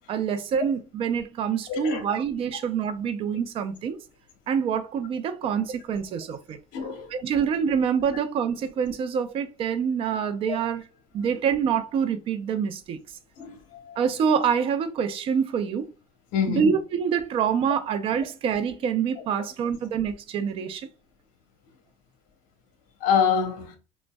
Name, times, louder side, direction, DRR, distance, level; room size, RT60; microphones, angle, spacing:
voice 1, 0.1-4.0 4.5-6.6 7.1-10.8 11.1-13.0 14.0-15.9 16.5-20.9, right 7 dB, 40° right, 0.5 m, -26 dB
voice 2, 1.7-2.0 6.7-7.1 13.4-14.0 16.3-16.7 23.0-23.8, left 7 dB, 70° left, 1.0 m, -26 dB
5.1 x 2.1 x 2.2 m
cardioid pair, 150°, 15 cm